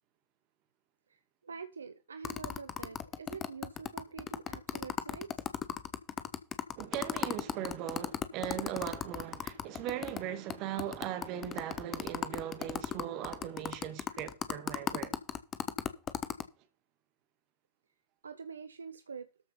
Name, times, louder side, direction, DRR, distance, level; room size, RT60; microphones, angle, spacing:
voice 1, 1.4-5.3 18.2-19.3, right 5 dB, 75° right, 0.7 m, -45 dB
sound 1, 2.2-10.2 10.5-10.6 10.8-16.4, left 9 dB, 25° left, 1.2 m, -36 dB
voice 2, 6.8-15.1, right 11 dB, 40° right, 2.3 m, -39 dB
13.5 x 5.9 x 5.7 m
figure-of-eight pair, 90°, 0 cm